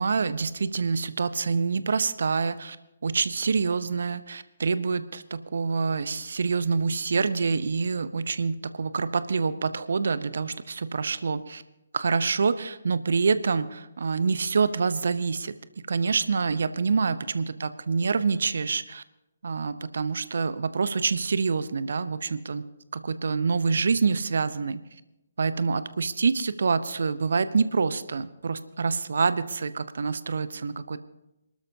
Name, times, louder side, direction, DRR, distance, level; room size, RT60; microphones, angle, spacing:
voice 1, 0.0-2.8 3.0-11.6 11.9-15.5 15.9-19.0 19.4-22.6 22.9-24.8 25.4-31.0, right 5 dB, 60° right, 14 dB, 0.8 m, -26 dB
26.5 x 12.5 x 2.8 m, 0.92 s
figure-of-eight pair, 135°, 0 cm